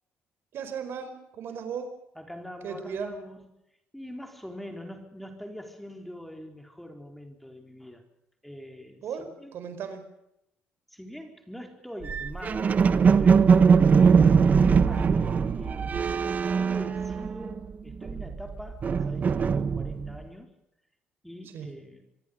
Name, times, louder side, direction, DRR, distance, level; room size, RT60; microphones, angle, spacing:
voice 1, 0.5-2.0 2.6-3.1 9.0-10.1 13.9-14.3 21.4-21.7, right 6 dB, 65° right, 5.0 m, -37 dB
voice 2, 2.2-3.5 3.9-8.0 8.4-9.5 10.9-13.8 14.4-20.5 21.2-22.0, equal, 5° left, 4.1 m, -43 dB
sound 1, 12.0-17.6 17.9-20.2, right 6 dB, 40° right, 1.5 m, -21 dB
26.0 x 23.5 x 5.3 m
cardioid pair, 110°, 4 cm